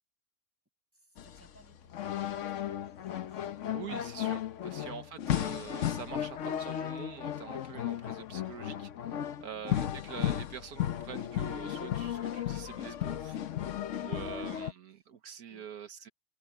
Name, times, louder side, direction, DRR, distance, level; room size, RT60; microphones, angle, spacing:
voice 1, 0.9-3.8 4.6-4.8 9.4-9.7 14.0-14.3 14.5-15.1 15.5-15.7, equal, 10° right, 6.2 m, -64 dB
sound 1, 1.2-14.7, left 11 dB, 60° left, 1.0 m, -35 dB
voice 2, 3.7-13.4 14.0-16.1, right 8 dB, 80° right, 1.6 m, -45 dB
omnidirectional pair, 1.6 m